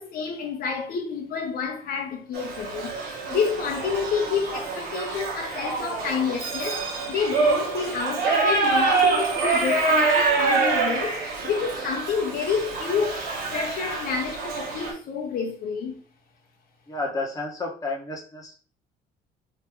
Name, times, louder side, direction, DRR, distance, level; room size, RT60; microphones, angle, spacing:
voice 1, 0.0-3.0 3.3-11.2 11.4-13.2 13.5-16.0, left 6 dB, 60° left, 0.7 m, -29 dB
Shout / Livestock farm animals working animals, 2.3-14.9, right 4 dB, 65° right, 1.3 m, -26 dB
voice 2, 16.9-18.5, left 2 dB, 20° left, 1.0 m, -31 dB
3.0 x 2.7 x 3.5 m
cardioid pair, 110°, 17 cm